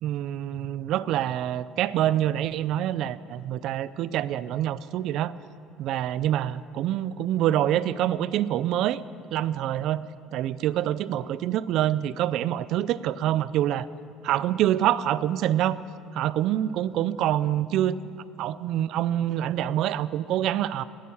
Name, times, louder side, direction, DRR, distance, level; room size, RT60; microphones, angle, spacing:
voice 1, 0.0-5.3 5.8-9.0 9.3-10.0 10.3-13.9 14.2-15.8 16.1-18.0 18.4-20.8, right 12 dB, 50° right, 18 dB, 0.4 m, -26 dB
17.0 x 10.5 x 7.0 m, 2.8 s
cardioid pair, 175°, 0 cm